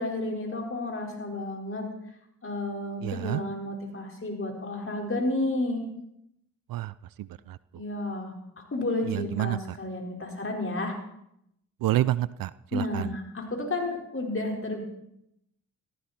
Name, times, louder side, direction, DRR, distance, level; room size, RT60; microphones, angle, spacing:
voice 1, 0.0-1.9 2.4-5.8 7.7-8.3 8.7-10.9 12.7-14.8, left 2 dB, 35° left, 0 dB, 4.9 m, -31 dB
voice 2, 3.0-3.4 6.7-7.6 9.0-9.8 11.8-13.1, right 14 dB, 60° right, 19 dB, 0.5 m, -29 dB
15.5 x 14.5 x 4.4 m, 0.78 s
hypercardioid pair, 40°, 39 cm